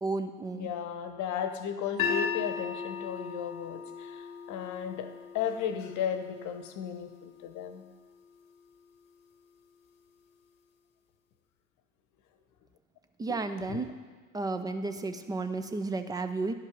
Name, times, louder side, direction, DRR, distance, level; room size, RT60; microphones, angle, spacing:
voice 1, 0.0-0.7 13.2-13.9 14.3-16.5, right 3 dB, 10° right, 9 dB, 0.3 m, -32 dB
voice 2, 0.5-7.8 13.7-13.8, left 8 dB, 45° left, 8 dB, 0.9 m, -35 dB
sound 1, 2.0-8.2, left 6 dB, 80° left, 0.9 m, -37 dB
10.5 x 5.3 x 5.2 m, 1.4 s
hypercardioid pair, 80°, 40 cm